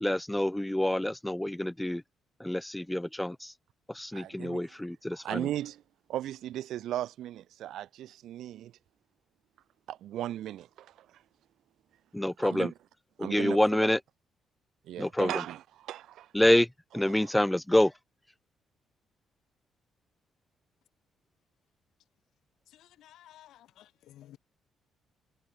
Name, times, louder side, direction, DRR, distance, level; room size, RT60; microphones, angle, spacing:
voice 1, 0.0-2.0 2.4-3.5 3.9-5.5 12.1-12.7 13.2-14.0 15.0-15.3 16.3-16.7 16.9-17.9, left 1 dB, 5° left, 0.3 m, -27 dB
voice 2, 4.1-4.8 5.1-5.8 6.1-8.8 9.9-11.2 12.4-12.7 13.2-13.9 14.8-16.3 17.1-17.3, right 12 dB, 80° right, 0.6 m, -37 dB
voice 3, 22.7-24.4, left 13 dB, 80° left, 1.1 m, -55 dB
cardioid pair, 90°, 0 cm